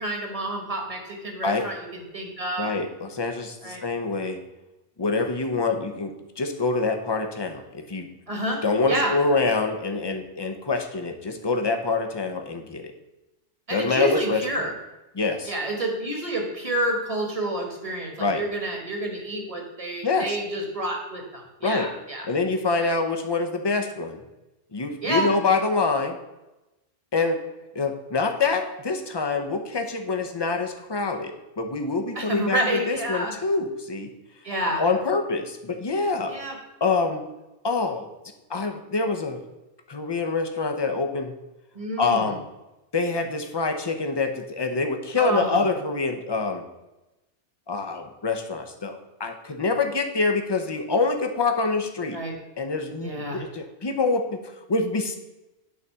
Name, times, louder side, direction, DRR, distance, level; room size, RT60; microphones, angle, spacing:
voice 1, 0.0-2.8 3.6-3.8 8.3-9.1 13.7-14.7 15.5-22.3 22.8-22.9 25.0-25.3 32.1-33.3 34.4-34.8 36.3-36.6 41.7-42.3 45.2-45.6 52.1-52.4 53.0-53.4, right 1 dB, 30° right, 1 dB, 1.6 m, -29 dB
voice 2, 2.6-4.4 5.0-8.1 8.6-12.9 13.7-14.4 15.1-15.5 18.2-18.4 20.0-20.4 21.6-21.9 22.3-24.2 24.7-26.2 27.1-27.4 27.7-32.6 32.9-34.1 34.8-36.3 36.8-37.2 37.6-38.1 38.5-39.4 39.9-41.3 42.0-42.4 42.9-46.6 47.7-52.2 52.6-54.4 54.7-55.2, left 3 dB, 25° left, 6 dB, 0.7 m, -25 dB
8.8 x 4.1 x 6.7 m, 0.99 s
omnidirectional pair, 1.2 m